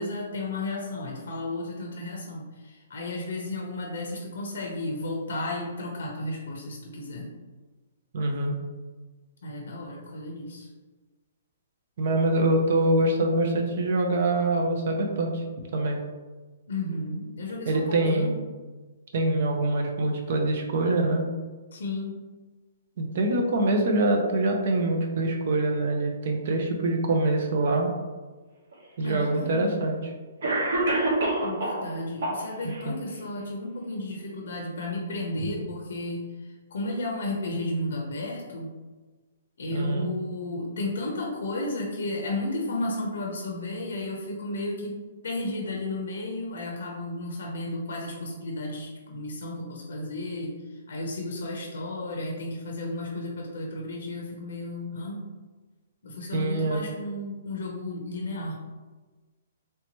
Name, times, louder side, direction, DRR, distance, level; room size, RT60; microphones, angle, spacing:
voice 1, 0.0-7.3 9.4-10.7 16.7-18.4 21.7-22.1 29.0-29.8 31.4-38.7 39.6-55.2 56.0-58.6, left 2 dB, 70° left, 0 dB, 0.6 m, -33 dB
voice 2, 8.1-8.6 12.0-15.4 15.7-16.0 17.7-18.4 19.1-21.3 23.0-27.9 29.0-30.1 32.6-32.9 35.4-35.5 39.7-40.1 56.3-56.8, right 2 dB, 45° right, 2 dB, 0.5 m, -24 dB
Cough, 28.7-28.8 29.8-29.9 30.4-31.8 32.2-32.8, right 2 dB, 65° right, 1.1 m, -26 dB
3.2 x 2.8 x 2.9 m, 1.3 s
hypercardioid pair, 175°, 0 cm